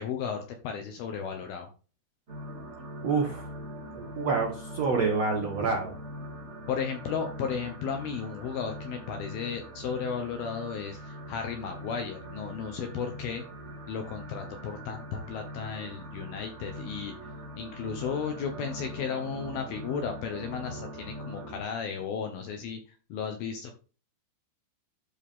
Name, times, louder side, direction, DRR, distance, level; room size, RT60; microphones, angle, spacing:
voice 1, 0.0-1.7 6.7-13.4 13.9-17.2 17.6-22.8 23.1-23.7, left 6 dB, 75° left, 4 dB, 2.3 m, -34 dB
sound 1, 2.3-21.6, equal, 40° right, 0.9 m, -42 dB
voice 2, 3.0-3.5 3.9-5.9, right 4 dB, 75° right, 1 dB, 1.5 m, -27 dB
12.5 x 4.2 x 3.6 m, 0.36 s
omnidirectional pair, 5.4 m